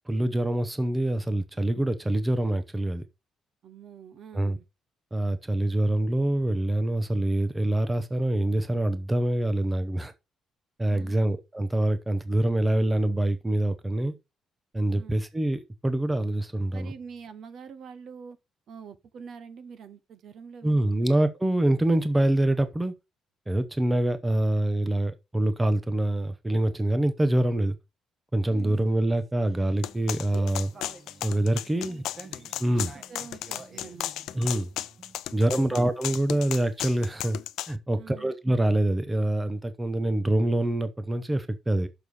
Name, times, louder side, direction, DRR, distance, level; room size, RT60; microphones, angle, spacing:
voice 1, 0.1-3.0 4.3-4.6 5.1-10.1 10.8-14.1 14.7-16.9 20.6-22.9 23.5-27.8 28.3-30.7 31.2-32.0 32.6-32.9 34.3-34.7 35.3-37.4 37.7-41.9, right 1 dB, 10° right, 0.8 m, -25 dB
voice 2, 3.6-4.6 10.9-11.3 14.9-15.2 16.7-18.4 18.7-21.1 28.5-28.9 31.9-32.3 32.7-34.3 35.3-35.8 37.9-38.3, right 6 dB, 55° right, 0.9 m, -46 dB
sound 1, 28.4-35.2, right 3 dB, 30° right, 1.4 m, -49 dB
sound 2, 29.8-37.7, left 14 dB, 90° left, 0.5 m, -34 dB
6.7 x 5.5 x 6.3 m
cardioid pair, 150°, 0 cm